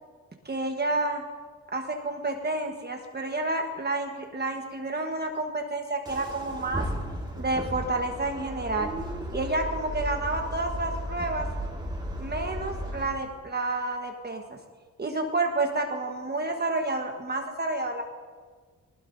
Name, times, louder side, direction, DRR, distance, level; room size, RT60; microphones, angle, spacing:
voice 1, 0.4-1.2 1.7-6.8 7.4-8.9 9.3-11.5 12.2-14.6 15.0-18.0, right 2 dB, 30° right, 3 dB, 1.2 m, -29 dB
sound 1, 6.1-13.1, equal, 15° right, 2.5 m, -35 dB
19.5 x 19.5 x 2.6 m, 1.5 s
cardioid pair, 85°, 34 cm